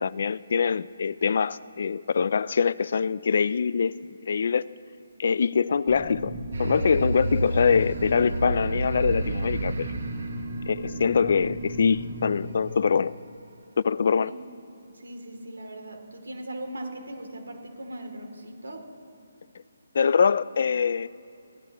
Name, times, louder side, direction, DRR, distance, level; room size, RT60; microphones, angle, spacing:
voice 1, 0.0-3.9 4.3-4.6 5.2-10.0 10.7-13.1 13.8-14.3 19.9-21.1, left 6 dB, 50° left, 17 dB, 0.3 m, -24 dB
sound 1, 5.9-12.3, right 2 dB, 10° right, 3.9 m, -36 dB
sound 2, 6.5-11.5, right 1 dB, 60° right, 1.3 m, -31 dB
voice 2, 14.9-18.9, right 1 dB, 90° right, 3 dB, 2.7 m, -39 dB
23.0 x 15.5 x 3.0 m, 2.8 s
hypercardioid pair, 170°, 0 cm